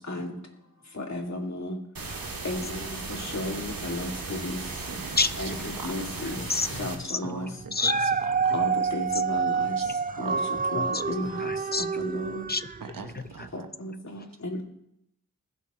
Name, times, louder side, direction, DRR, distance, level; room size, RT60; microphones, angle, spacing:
voice 1, 0.1-0.4 1.0-1.8 2.4-4.6 5.4-6.4 6.8-7.5 8.5-9.8 10.2-10.4 10.7-11.5 11.8-12.4 13.5-14.6, left 1 dB, 50° left, 1 dB, 2.4 m, -34 dB
sound 1, 2.0-7.0, right 3 dB, 90° right, 1.8 m, -36 dB
voice 2, 4.8-5.3 5.8-6.0 7.2-8.7 9.6-10.4 12.8-13.7, right 5 dB, 75° right, 7 dB, 1.1 m, -42 dB
voice 3, 6.2-7.2 7.7-8.1 9.1-9.2 10.7-11.0 11.4-11.9 12.5-12.6 13.0-13.5 14.1-14.3, left 3 dB, 30° left, 12 dB, 0.8 m, -29 dB
Dog, 7.6-12.9 13.5-13.6, right 5 dB, 25° right, 0.5 m, -28 dB
21.0 x 7.2 x 3.0 m, 0.77 s
cardioid pair, 40°, 34 cm